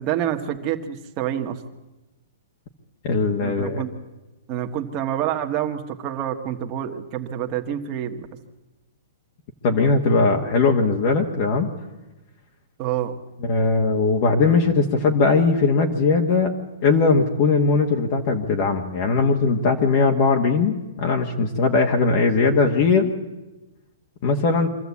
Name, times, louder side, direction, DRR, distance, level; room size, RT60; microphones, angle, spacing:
voice 1, 0.0-1.6 3.4-3.9 4.5-8.3 12.8-13.1, right 10 dB, 25° right, 4 dB, 1.5 m, -27 dB
voice 2, 3.0-3.8 9.6-11.7 13.4-16.6 16.8-23.1 24.2-24.7, left 4 dB, 40° left, 2 dB, 1.5 m, -19 dB
24.5 x 14.0 x 8.4 m, 1.1 s
hypercardioid pair, 165°, 0 cm